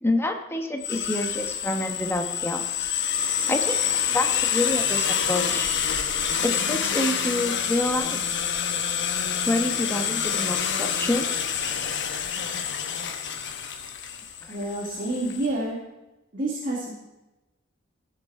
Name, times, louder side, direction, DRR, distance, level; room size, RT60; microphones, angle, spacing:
voice 1, 0.0-2.6 3.5-5.7 6.4-8.2 9.5-11.3 14.4-14.6, left 1 dB, 10° left, 4 dB, 1.0 m, -27 dB
sound 1, 0.8-15.5, left 8 dB, 60° left, 1.0 m, -27 dB
voice 2, 14.5-15.8 16.3-16.9, right 2 dB, 40° right, -4 dB, 2.0 m, -28 dB
16.0 x 6.7 x 4.7 m, 1.0 s
head